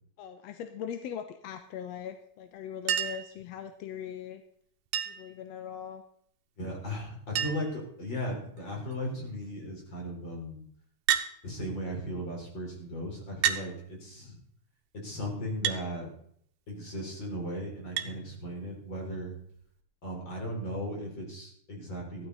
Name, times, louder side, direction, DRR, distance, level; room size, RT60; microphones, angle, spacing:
voice 1, 0.2-4.4 5.1-6.0, left 8 dB, 70° left, 8 dB, 1.7 m, -40 dB
Chink clink, 2.9-3.3 4.9-5.3 6.7-6.8 7.0-7.1 7.4-7.8 8.6-8.9 11.1-11.3 12.4-12.5 13.4-13.7 15.6-15.8 18.0-18.1 19.6-19.7, right 10 dB, 80° right, 2.6 m, -29 dB
voice 2, 6.6-10.6 11.4-14.4 14.9-16.1 16.7-19.3 20.0-22.3, equal, 35° left, -1 dB, 4.7 m, -37 dB
14.5 x 12.0 x 4.1 m, 0.65 s
omnidirectional pair, 3.7 m